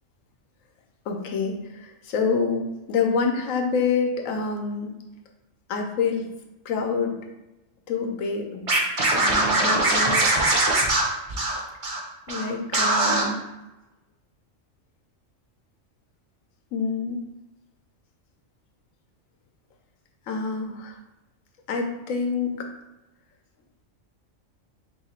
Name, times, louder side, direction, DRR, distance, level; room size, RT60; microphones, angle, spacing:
voice 1, 1.1-4.9 5.7-6.2 6.7-7.1 7.9-8.6 9.2-10.4 12.3-13.4 16.7-17.2 20.3-20.9 21.7-22.6, left 5 dB, 90° left, 2 dB, 1.0 m, -27 dB
Scratching (performance technique), 8.7-12.0 12.3-12.4 12.7-13.2, right 2 dB, 40° right, 0.5 m, -21 dB
3.0 x 2.8 x 4.2 m, 0.99 s
omnidirectional pair, 1.3 m